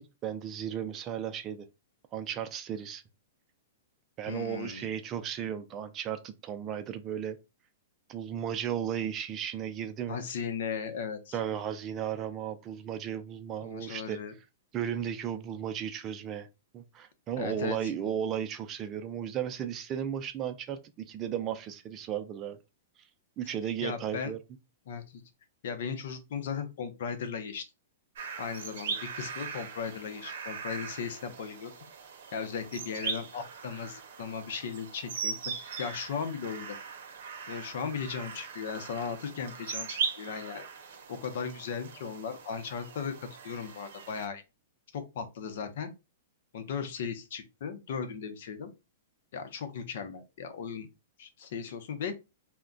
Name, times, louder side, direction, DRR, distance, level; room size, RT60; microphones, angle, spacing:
voice 1, 0.0-1.6 2.1-3.0 4.2-7.4 8.1-10.2 11.3-14.2 14.7-16.5 16.7-22.6 23.4-24.4, right 9 dB, 25° right, 0.4 m, -35 dB
voice 2, 4.3-4.9 10.1-11.4 13.6-14.3 17.4-17.9 23.8-24.3 24.9-25.2 25.6-27.6 28.4-31.7 32.3-35.4 35.8-36.7 37.5-40.7 41.1-44.4 44.9-45.9 46.5-48.7 49.3-50.9 51.2-52.1, left 6 dB, 65° left, 0.7 m, -37 dB
sound 1, 28.2-44.3, right 6 dB, 70° right, 0.7 m, -40 dB
2.3 x 2.1 x 3.7 m
hypercardioid pair, 145°, 0 cm